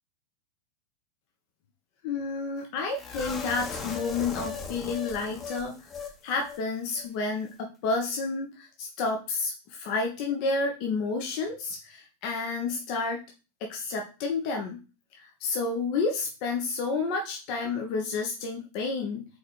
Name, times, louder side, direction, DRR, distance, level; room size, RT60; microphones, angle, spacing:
voice 1, 2.0-5.7 6.2-13.2 13.6-14.8 15.2-19.3, left 4 dB, 45° left, 2 dB, 1.0 m, -30 dB
sound 1, 3.0-6.2 6.4-6.6 6.9-7.1, left 5 dB, 20° left, 1.2 m, -38 dB
4.5 x 4.4 x 4.7 m, 0.32 s
figure-of-eight pair, 90°, 0 cm